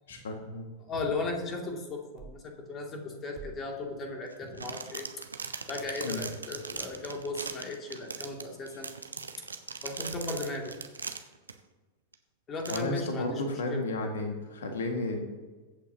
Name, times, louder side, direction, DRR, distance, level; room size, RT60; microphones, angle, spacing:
voice 1, 0.1-0.7 6.0-6.2 12.7-15.2, left 2 dB, 65° left, 4 dB, 1.9 m, -33 dB
voice 2, 0.9-5.1 5.7-8.9 9.8-10.7 12.5-13.4 13.7-13.8, left 3 dB, 25° left, 1 dB, 2.5 m, -36 dB
sound 1, 2.2-2.5 3.4-3.8, right 5 dB, 40° right, 1.6 m, -46 dB
Packet handling, 4.3-11.5 12.1-12.2 12.6-12.8, right 4 dB, 75° right, 0.8 m, -40 dB
22.0 x 8.5 x 2.9 m, 1.3 s
figure-of-eight pair, 90°, 0 cm